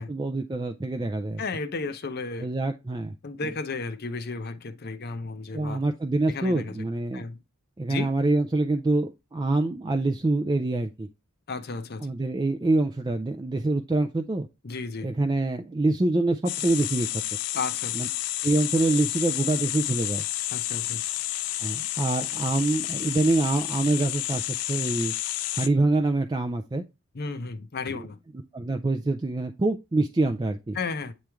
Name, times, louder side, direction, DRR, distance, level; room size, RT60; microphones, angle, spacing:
voice 1, 0.0-1.4 2.4-3.1 3.4-3.5 5.5-7.3 7.8-11.1 12.0-14.5 15.0-17.1 17.9-18.1 18.4-20.2 21.6-24.4 24.7-25.1 25.5-26.8 27.9-28.0 28.5-30.8, right 2 dB, 20° right, 0.3 m, -25 dB
voice 2, 1.4-2.5 3.2-5.8 6.3-6.8 7.1-7.4 7.9-8.1 11.5-12.1 14.6-15.1 17.5-18.0 20.5-21.0 27.1-28.2 30.7-31.1, left 4 dB, 45° left, 0.6 m, -33 dB
sound 1, 16.5-25.7, left 16 dB, 90° left, 0.5 m, -30 dB
8.8 x 3.1 x 3.4 m
head